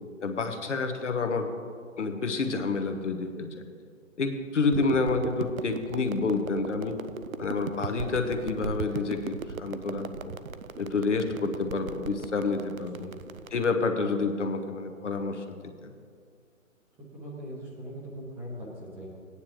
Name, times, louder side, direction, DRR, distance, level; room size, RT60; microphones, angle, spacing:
voice 1, 0.2-1.5 2.0-3.6 4.2-7.0 7.4-10.3 10.8-13.1 13.5-15.9, left 4 dB, 60° left, 5 dB, 1.2 m, -29 dB
sound 1, 4.7-13.6, right 5 dB, 80° right, 0.6 m, -38 dB
voice 2, 12.9-13.4 17.1-19.1, equal, 5° right, -7 dB, 0.8 m, -41 dB
16.0 x 9.7 x 3.0 m, 2.1 s
figure-of-eight pair, 140°, 41 cm